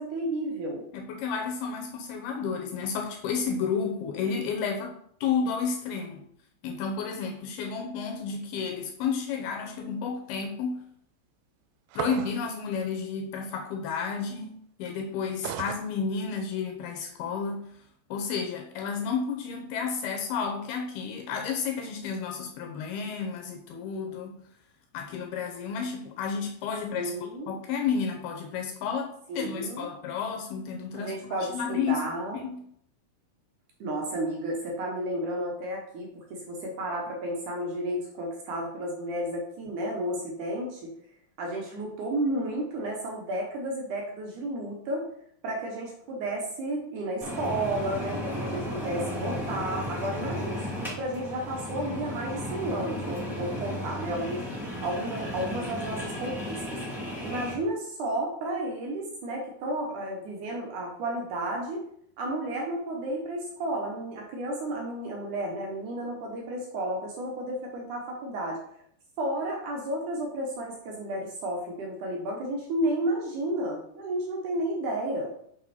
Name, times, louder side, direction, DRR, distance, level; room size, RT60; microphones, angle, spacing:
voice 1, 0.0-0.9 27.0-27.5 29.3-29.9 30.9-32.4 33.8-40.9 41.4-45.1 45.4-56.8 57.2-61.8 62.2-68.6 69.2-75.3, right 1 dB, 75° right, 0 dB, 1.8 m, -32 dB
voice 2, 0.9-6.2 6.6-10.8 12.0-17.7 18.1-24.4 24.9-27.1 27.5-32.1 32.3-32.6, left 6 dB, 75° left, 3 dB, 2.3 m, -31 dB
sound 1, 11.9-12.5 15.4-15.8, right 10 dB, 90° right, 3.0 m, -34 dB
sound 2, 47.2-57.5, equal, ahead, 1.1 m, -34 dB
6.4 x 6.2 x 4.3 m, 0.67 s
omnidirectional pair, 5.4 m